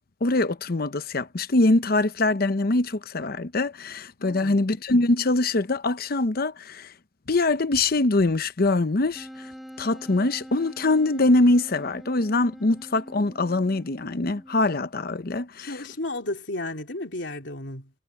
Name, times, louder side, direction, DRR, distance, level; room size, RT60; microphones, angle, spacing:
voice 1, 0.2-6.9 7.3-9.3 9.8-15.8, left 2 dB, 55° left, 0.8 m, -23 dB
voice 2, 4.2-4.6 15.6-17.9, left 2 dB, 75° left, 3.9 m, -33 dB
Wind instrument woodwind instrument, 9.1-14.8, equal, ahead, 4.2 m, -44 dB
head